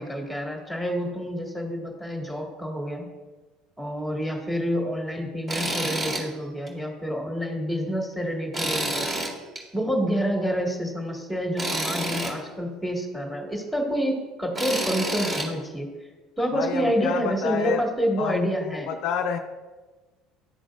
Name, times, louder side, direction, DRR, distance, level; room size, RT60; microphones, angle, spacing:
voice 1, 0.0-3.1 3.8-9.1 9.7-15.9 16.4-18.9, equal, 5° right, 1 dB, 1.7 m, -28 dB
Tools, 5.5-6.2 6.7-6.8 8.5-9.6 11.6-12.3 14.5-15.5, right 1 dB, 35° right, 1.9 m, -28 dB
voice 2, 16.5-17.8 18.2-19.4, left 7 dB, 65° left, 6 dB, 0.4 m, -29 dB
11.0 x 3.9 x 2.4 m, 1.3 s
hypercardioid pair, 70°, 0 cm